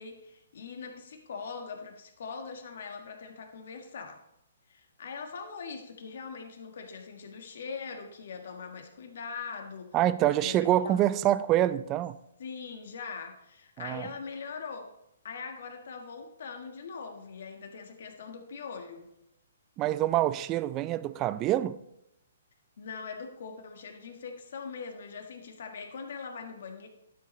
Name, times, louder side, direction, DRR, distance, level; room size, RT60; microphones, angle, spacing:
voice 1, 0.0-4.2 4.7-9.9 10.4-11.2 12.4-14.9 15.2-19.1 22.8-26.9, left 5 dB, 65° left, 1.4 m, -41 dB
voice 2, 9.9-12.2 13.8-14.1 19.8-21.8, right 13 dB, 25° right, 0.3 m, -26 dB
11.5 x 6.8 x 3.1 m
hypercardioid pair, 150°, 0 cm